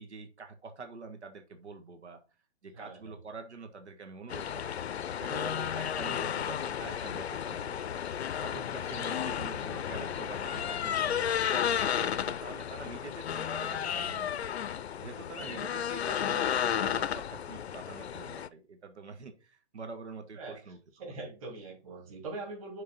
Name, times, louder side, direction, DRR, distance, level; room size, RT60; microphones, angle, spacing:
voice 1, 0.0-2.2 2.6-4.8 5.2-8.0 8.4-14.4 15.0-20.8, right 4 dB, 90° right, 6 dB, 1.5 m, -46 dB
voice 2, 2.7-3.2 9.3-9.4 13.9-14.1 15.4-15.6 20.3-20.6 21.0-22.8, right 3 dB, 30° right, 0 dB, 3.1 m, -43 dB
sound 1, 4.3-18.5, left 9 dB, 70° left, 0.6 m, -33 dB
6.5 x 3.9 x 5.4 m, 0.33 s
hypercardioid pair, 170°, 33 cm